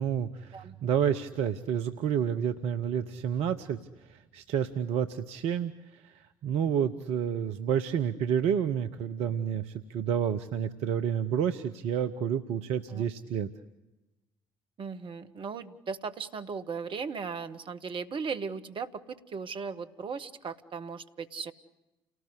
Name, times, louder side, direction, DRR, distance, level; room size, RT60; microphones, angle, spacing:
voice 1, 0.0-3.8 4.1-13.5, right 8 dB, 70° right, 9 dB, 1.0 m, -30 dB
voice 2, 14.8-21.5, right 5 dB, 50° right, 10 dB, 1.8 m, -37 dB
30.0 x 19.0 x 8.3 m, 1.0 s
hypercardioid pair, 50°, 11 cm